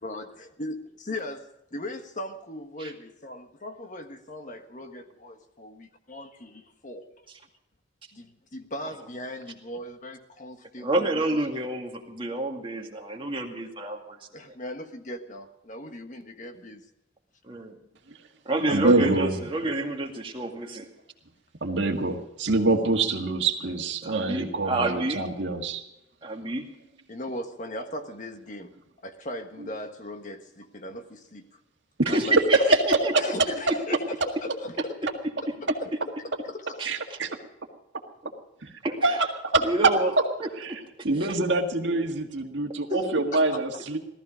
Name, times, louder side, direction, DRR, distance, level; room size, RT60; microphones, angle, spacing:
voice 1, 0.0-7.1 8.1-8.3 8.5-11.2 14.3-16.8 24.0-24.2 27.1-28.7 29.0-31.6 32.1-32.7 33.2-34.0 34.4-35.0 35.6-36.8 43.3-44.0, left 1 dB, 40° left, 6 dB, 1.4 m, -39 dB
voice 2, 10.8-14.2 17.4-17.8 18.5-20.9 24.0-25.2 26.2-26.6 32.1-33.1 33.7-34.0 36.8-37.2 38.8-39.2 39.6-40.1 40.4-40.8 41.2-41.4 42.9-43.2, right 2 dB, 25° right, 1 dB, 2.1 m, -29 dB
voice 3, 18.7-19.3 21.6-25.8 32.0-32.1 36.9-37.3 38.6-38.7 39.0-39.2 39.5-39.7 40.6-40.8 41.0-44.0, right 2 dB, 65° right, 3 dB, 1.9 m, -25 dB
18.0 x 14.0 x 5.1 m, 0.88 s
head